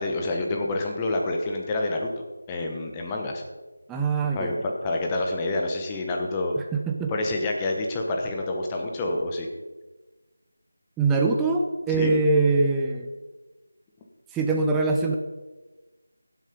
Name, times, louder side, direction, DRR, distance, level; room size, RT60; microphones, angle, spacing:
voice 1, 0.0-2.1 2.5-3.4 4.3-6.5 7.1-9.5 12.0-12.1, left 2 dB, 15° left, 1 dB, 1.2 m, -28 dB
voice 2, 3.9-4.6 6.7-7.1 11.0-13.1 14.3-15.2, right 3 dB, 5° right, 1 dB, 0.5 m, -23 dB
15.5 x 7.6 x 5.2 m, 1.2 s
figure-of-eight pair, 170°, 0 cm